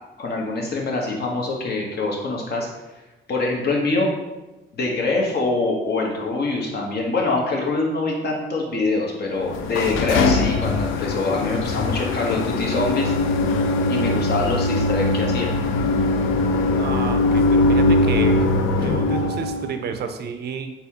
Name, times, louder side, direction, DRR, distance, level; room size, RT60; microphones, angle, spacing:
voice 1, 0.2-2.7 3.3-4.1 4.7-13.1 13.9-15.5, left 3 dB, 55° left, -1 dB, 1.0 m, -24 dB
sound 1, 9.4-19.7, left 2 dB, 85° left, 0.4 m, -21 dB
voice 2, 16.8-18.3 18.8-20.7, right 6 dB, 55° right, 7 dB, 0.4 m, -30 dB
4.2 x 3.5 x 2.8 m, 1.1 s
cardioid pair, 90°, 20 cm